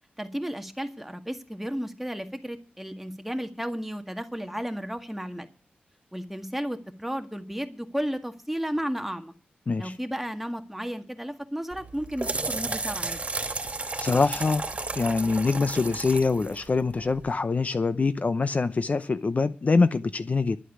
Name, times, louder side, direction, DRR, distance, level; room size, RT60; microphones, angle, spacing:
voice 1, 0.2-5.5 6.1-9.3 9.8-13.2, equal, 5° right, 1.8 m, -33 dB
sound 1, 11.7-17.3, right 3 dB, 35° right, 2.6 m, -33 dB
voice 2, 14.0-14.6 14.9-20.6, left 4 dB, 45° left, 0.7 m, -24 dB
12.0 x 8.2 x 9.3 m
wide cardioid pair, 85°, 3 cm